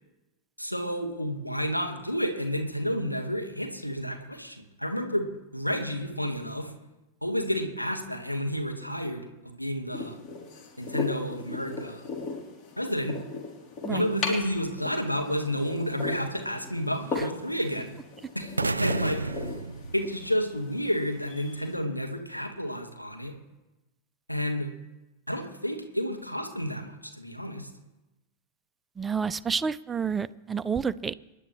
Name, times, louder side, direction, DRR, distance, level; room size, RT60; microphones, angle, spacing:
voice 1, 0.6-5.3 5.5-6.7 7.2-10.2 10.8-12.0 12.8-13.2 13.9-18.0 18.3-19.2 19.9-23.3 24.3-24.7 25.3-27.7, equal, 90° left, 4 dB, 1.5 m, -30 dB
sound 1, 9.9-21.7, left 3 dB, 35° left, 3.2 m, -38 dB
sound 2, 18.6-20.7, right 3 dB, 80° right, 0.4 m, -31 dB
voice 2, 29.0-31.1, right 6 dB, 15° right, 15 dB, 0.5 m, -29 dB
27.0 x 10.5 x 3.2 m, 1.0 s
figure-of-eight pair, 90°, 0 cm